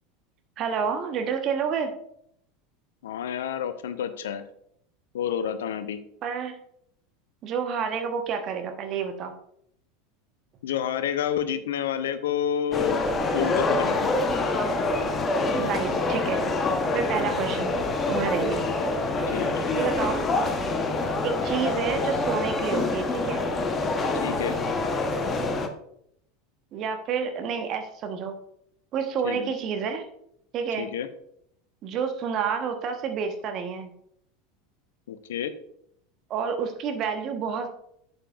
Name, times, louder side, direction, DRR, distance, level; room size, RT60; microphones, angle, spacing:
voice 1, 0.6-1.9 6.2-6.5 7.4-9.3 14.5-14.7 15.6-16.4 16.9-18.7 19.7-20.3 21.2-23.5 26.7-28.4 28.9-30.0 30.5-30.9 31.8-33.9 36.3-37.7, right 6 dB, 40° right, 6 dB, 1.2 m, -29 dB
voice 2, 3.0-4.4 5.1-6.0 10.6-13.0 13.3-14.1 19.3-19.7 24.1-24.6 29.2-29.5 30.8-31.1 35.1-35.5, left 9 dB, 65° left, 12 dB, 0.7 m, -29 dB
sound 1, 12.7-25.7, left 2 dB, 25° left, 1.0 m, -26 dB
11.0 x 7.9 x 2.5 m, 0.71 s
figure-of-eight pair, 80°, 0 cm